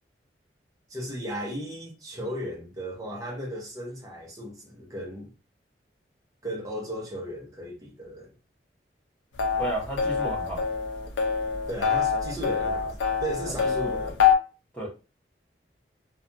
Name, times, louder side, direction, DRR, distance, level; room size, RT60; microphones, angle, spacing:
voice 1, 0.9-5.3 6.4-8.3 11.7-14.2 14.8-14.9, equal, 20° right, 0.7 m, -35 dB
sound 1, 9.4-14.3, left 6 dB, 85° left, 0.5 m, -25 dB
voice 2, 9.6-10.7 13.6-14.1 14.7-14.9, right 1 dB, 10° left, 1.0 m, -34 dB
2.5 x 2.2 x 2.6 m
head